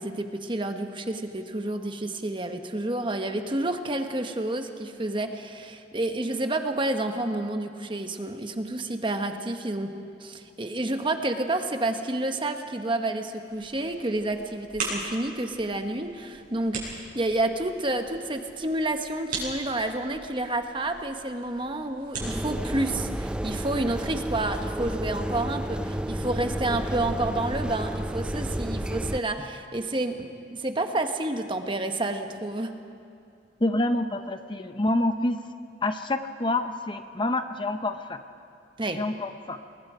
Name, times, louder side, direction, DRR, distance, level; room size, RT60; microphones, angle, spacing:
voice 1, 0.0-9.9 10.2-32.7 38.8-39.0, right 2 dB, 30° right, 6 dB, 1.2 m, -29 dB
sound 1, 13.5-23.6, right 3 dB, 50° right, 7.4 m, -40 dB
sound 2, 22.2-29.2, right 1 dB, 5° right, 0.4 m, -31 dB
voice 2, 33.6-35.4 35.8-38.2 39.0-39.6, left 2 dB, 25° left, 8 dB, 0.7 m, -27 dB
27.5 x 21.0 x 5.0 m, 2.4 s
head